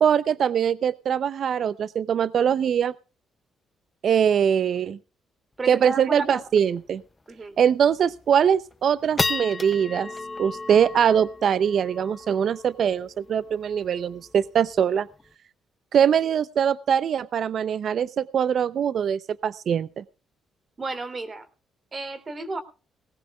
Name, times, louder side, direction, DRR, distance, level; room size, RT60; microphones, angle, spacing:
voice 1, 0.0-2.9 4.0-5.0 5.7-7.0 7.6-10.1 10.4-15.1 15.9-20.0, right 8 dB, 60° right, 17 dB, 0.5 m, -22 dB
voice 2, 5.6-6.7 7.3-7.6 20.8-21.4 21.9-22.6, right 3 dB, 35° right, 9 dB, 2.7 m, -32 dB
sound 1, 5.7-5.8 6.0-6.1 6.5-6.8 7.3-7.4 7.9-8.3 8.7-15.3, left 3 dB, 20° left, 0.5 m, -34 dB
19.5 x 17.0 x 2.3 m, 0.35 s
cardioid pair, 90°, 0 cm